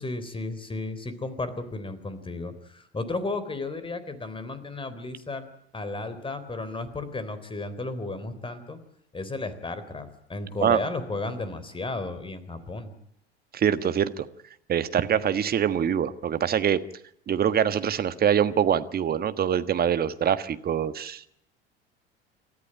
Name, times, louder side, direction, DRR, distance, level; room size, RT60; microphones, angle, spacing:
voice 1, 0.0-5.5 5.7-8.8 9.1-12.9, left 2 dB, 15° left, 12 dB, 3.6 m, -34 dB
voice 2, 13.5-14.2 14.7-16.8 17.3-21.2, right 9 dB, 30° right, 12 dB, 1.5 m, -24 dB
28.0 x 14.0 x 10.0 m, 0.75 s
figure-of-eight pair, 70°, 32 cm